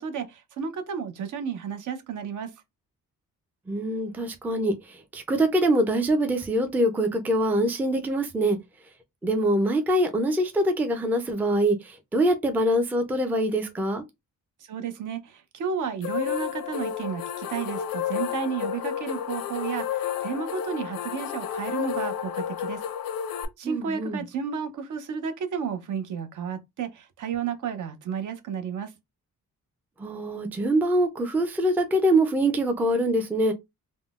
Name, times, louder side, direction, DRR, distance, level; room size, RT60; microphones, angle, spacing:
voice 1, 0.0-2.5 14.6-22.8 23.6-28.9, right 6 dB, 65° right, 0.6 m, -32 dB
voice 2, 3.7-8.6 9.2-14.0 23.6-24.2 30.0-33.5, right 1 dB, 5° right, 0.3 m, -24 dB
sound 1, 16.0-23.5, left 9 dB, 90° left, 0.5 m, -31 dB
3.6 x 2.0 x 2.3 m
wide cardioid pair, 150°, 34 cm